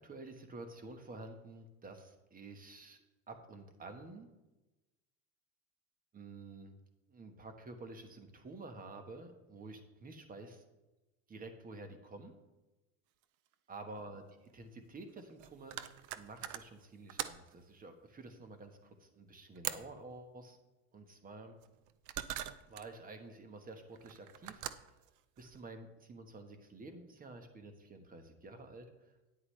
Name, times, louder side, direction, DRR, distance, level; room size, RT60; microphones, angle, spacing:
voice 1, 0.0-3.0 3.3-4.3 6.1-6.7 7.1-10.6 11.3-12.3 13.7-15.8 16.2-20.6 20.9-21.6 22.6-24.9 25.4-29.2, right 2 dB, 20° right, 7 dB, 1.2 m, -50 dB
sound 1, 13.2-13.3 13.5-13.6 14.8-17.6 19.5-20.0 21.6-22.9 23.9-25.6, right 12 dB, 45° right, 0.5 m, -43 dB
9.7 x 9.5 x 3.2 m, 1.1 s
supercardioid pair, 110°, 42 cm